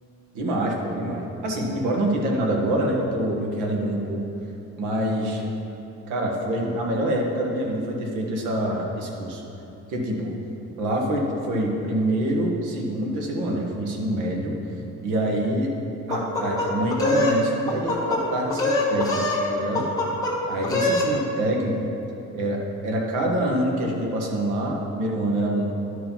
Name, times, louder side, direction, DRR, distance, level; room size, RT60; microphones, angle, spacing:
voice 1, 0.3-4.2 4.8-5.4 6.1-9.4 9.9-10.3 10.8-14.5 15.0-15.7 16.1-19.8 20.5-21.9 22.3-25.8, right 1 dB, 85° right, 0 dB, 1.6 m, -26 dB
sound 1, 16.1-17.4 17.7-18.2 18.5-19.4 19.7-20.3 20.6-21.1, left 2 dB, 10° left, 1.3 m, -23 dB
11.5 x 4.9 x 5.7 m, 2.9 s
cardioid pair, 155°, 30 cm